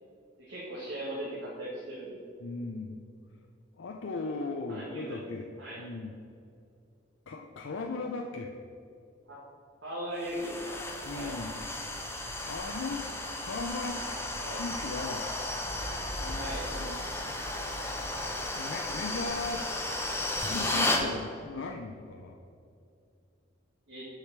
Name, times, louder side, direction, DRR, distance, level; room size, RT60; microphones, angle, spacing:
voice 1, 0.4-2.2 4.7-5.3 5.6-5.8 9.3-9.4 9.8-10.8 11.1-11.3 14.4-14.6 16.3-16.7 23.9-24.1, right 1 dB, 75° right, -7 dB, 1.6 m, -38 dB
voice 2, 2.4-3.1 3.7-5.5 5.8-6.1 7.3-8.5 11.0-11.6 12.4-13.1 13.4-14.0 14.6-15.3 16.2-17.0 17.2-17.4 18.5-19.7 20.5-22.4, left 3 dB, 80° left, 2 dB, 0.5 m, -37 dB
sound 1, 10.2-21.1, left 1 dB, 15° left, 0.7 m, -34 dB
6.6 x 4.9 x 6.6 m, 2.5 s
head